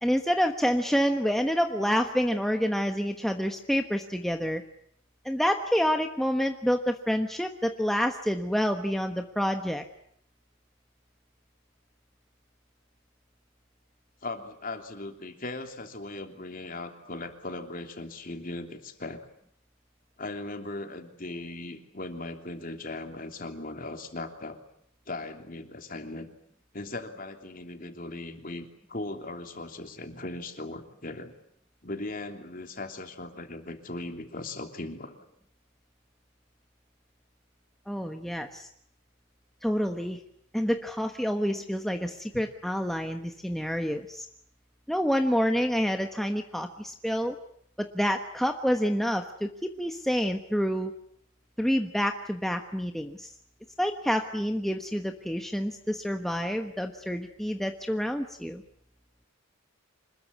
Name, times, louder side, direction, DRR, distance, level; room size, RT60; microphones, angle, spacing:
voice 1, 0.0-4.6 5.2-9.8 37.9-38.7 39.6-40.2 40.5-44.3 44.9-47.4 47.8-50.9 51.6-53.3 53.8-58.6, equal, ahead, 4 dB, 1.2 m, -28 dB
voice 2, 14.2-19.3 20.2-24.6 25.1-26.3 26.7-31.3 31.8-35.2, left 2 dB, 40° left, 5 dB, 3.1 m, -38 dB
26.5 x 21.0 x 9.7 m, 0.69 s
head